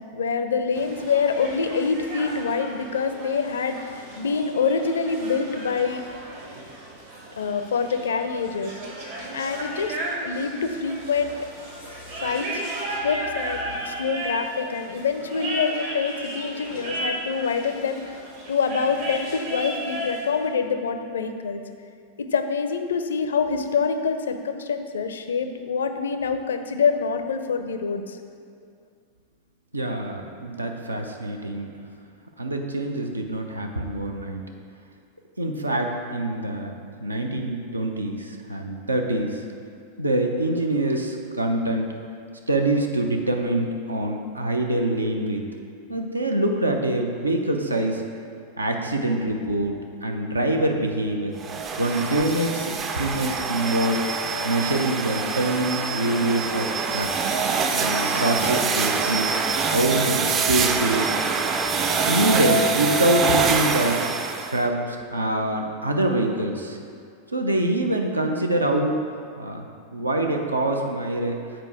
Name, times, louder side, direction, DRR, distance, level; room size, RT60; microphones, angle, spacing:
voice 1, 0.0-6.0 7.4-8.8 9.3-10.0 10.2-11.4 12.2-12.6 12.9-18.2 18.5-21.6 22.2-28.2, left 5 dB, 65° left, 8 dB, 0.4 m, -26 dB
sound 1, 0.7-20.2, right 1 dB, 55° right, 1.6 m, -35 dB
voice 2, 29.7-31.7 32.4-34.4 35.4-36.7 37.0-39.4 40.0-41.9 42.5-45.5 45.9-48.0 48.6-51.4 51.8-54.0 54.4-59.3 59.7-61.1 62.0-64.0 64.4-66.8 67.3-68.9 69.4-69.7 69.9-71.4, right 1 dB, 80° right, 3 dB, 0.6 m, -25 dB
sound 2, 51.4-64.6, right 4 dB, 30° right, 0.5 m, -25 dB
7.6 x 4.5 x 4.8 m, 2.3 s
figure-of-eight pair, 90°, 0 cm